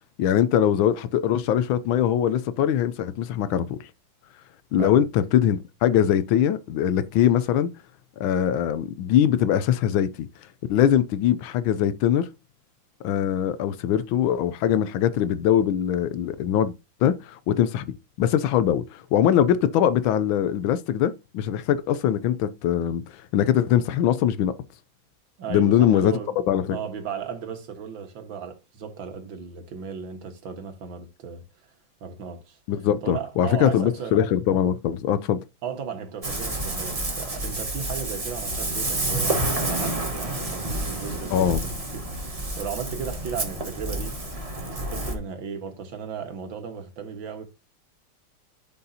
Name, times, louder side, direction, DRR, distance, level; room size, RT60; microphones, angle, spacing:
voice 1, 0.2-3.8 4.7-7.7 8.2-10.3 10.7-12.3 13.0-16.7 17.0-17.8 18.2-24.5 25.5-26.2 26.5-26.6 32.7-35.4 41.3-41.6, left 10 dB, 85° left, 1.4 m, -22 dB
voice 2, 25.4-26.4 26.7-31.4 32.0-32.6 33.0-34.2 35.6-42.3 42.6-44.2 44.8-47.4, right 6 dB, 70° right, 2.2 m, -35 dB
Ocean, 36.2-45.1, right 1 dB, 20° right, 1.3 m, -29 dB
11.5 x 5.6 x 2.8 m
omnidirectional pair, 2.2 m